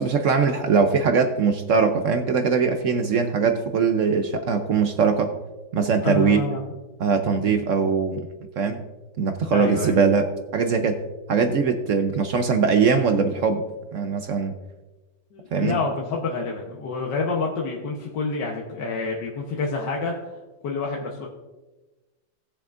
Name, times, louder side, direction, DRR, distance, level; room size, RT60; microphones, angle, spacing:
voice 1, 0.0-5.3 5.7-6.4 7.0-8.2 8.6-8.8 9.2-10.3 10.5-11.0 11.3-13.6 13.9-14.5 15.5-15.8, right 5 dB, 65° right, 7 dB, 0.8 m, -21 dB
voice 2, 6.0-6.6 7.3-7.6 9.5-9.9 15.3-20.1 20.6-21.3, left 4 dB, 70° left, -1 dB, 1.6 m, -28 dB
17.5 x 7.1 x 2.5 m, 1.2 s
omnidirectional pair, 2.0 m